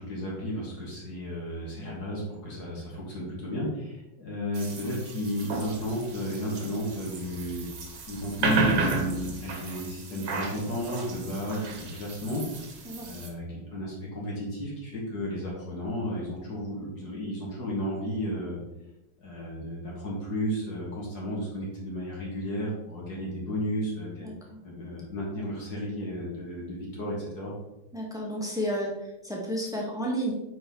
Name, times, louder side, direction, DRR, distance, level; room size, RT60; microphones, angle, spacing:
voice 1, 0.0-7.7 8.1-12.4 13.0-18.6 19.2-24.3 24.6-27.5, equal, 60° left, -4 dB, 2.5 m, -33 dB
sound 1, 4.5-13.3, right 3 dB, 75° right, 1.9 m, -33 dB
voice 2, 24.2-24.6 27.9-30.3, equal, ahead, -3 dB, 1.5 m, -32 dB
9.1 x 4.8 x 3.9 m, 0.95 s
omnidirectional pair, 2.0 m